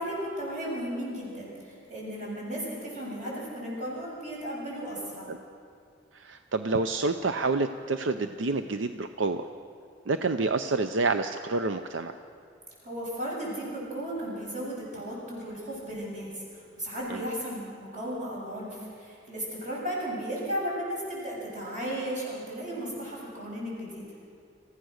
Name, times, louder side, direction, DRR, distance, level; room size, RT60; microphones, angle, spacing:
voice 1, 0.0-5.3 12.8-24.1, equal, 40° right, -5 dB, 7.1 m, -35 dB
voice 2, 6.1-9.5 10.1-12.1 17.1-17.3, right 3 dB, 80° right, 8 dB, 0.6 m, -28 dB
27.0 x 15.5 x 6.5 m, 2.3 s
head